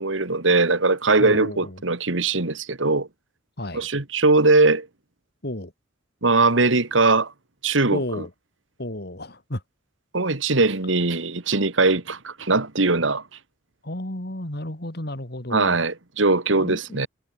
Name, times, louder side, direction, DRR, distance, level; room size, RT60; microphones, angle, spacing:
voice 1, 0.0-3.1 3.7-4.9 6.2-7.3 7.6-8.0 10.1-13.2 15.5-17.1, right 3 dB, 85° right, 2.1 m, -20 dB
voice 2, 1.2-1.8 3.6-3.9 5.4-5.7 7.9-8.3 8.8-9.6 13.8-15.8 16.5-17.1, left 1 dB, 55° left, 3.3 m, -32 dB
head